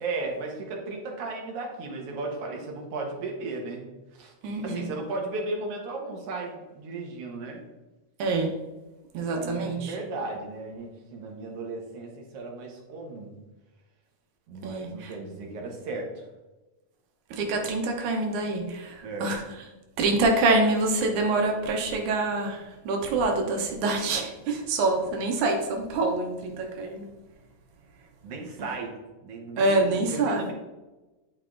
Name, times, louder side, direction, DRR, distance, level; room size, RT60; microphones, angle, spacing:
voice 1, 0.0-3.9 4.1-4.3 4.6-7.6 9.2-13.3 14.5-16.2 19.0-19.4 28.2-28.9 29.2-30.5, right 3 dB, 60° right, 0 dB, 1.9 m, -35 dB
voice 2, 4.4-4.9 8.2-8.5 9.1-10.0 14.6-15.1 17.4-19.4 20.0-27.1 29.6-30.5, right 2 dB, 90° right, 2 dB, 2.3 m, -26 dB
9.7 x 4.6 x 2.5 m, 1.1 s
omnidirectional pair, 3.3 m